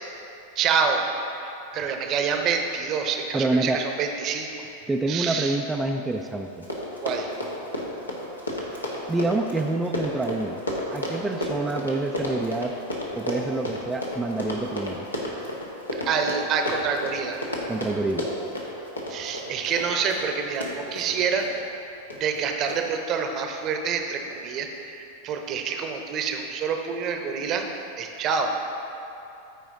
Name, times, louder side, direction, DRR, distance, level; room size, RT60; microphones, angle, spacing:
voice 1, 0.6-1.0 1.4-4.5 5.1-5.6 7.0-7.3 15.9-17.4 19.1-21.5 22.2-27.7 28.0-28.5, right 6 dB, 35° right, 4 dB, 0.8 m, -27 dB
voice 2, 3.3-3.8 4.9-6.5 9.1-10.6 10.9-12.8 13.1-15.1 17.7-18.3, right 2 dB, 10° right, 4 dB, 0.4 m, -27 dB
Run, 6.3-6.4 6.5-21.5 22.1-22.4 22.7-22.8, left 1 dB, 80° left, 1.2 m, -32 dB
13.5 x 4.8 x 3.7 m, 2.8 s
figure-of-eight pair, 90°, 0 cm